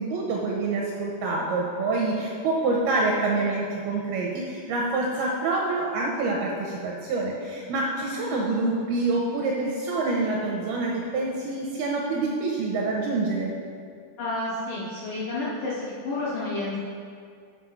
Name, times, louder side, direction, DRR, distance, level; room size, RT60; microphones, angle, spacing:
voice 1, 0.0-13.5, right 3 dB, 80° right, -2 dB, 2.3 m, -26 dB
voice 2, 14.2-16.8, left 2 dB, 70° left, -8 dB, 2.0 m, -30 dB
9.8 x 4.2 x 5.7 m, 2.2 s
omnidirectional pair, 5.1 m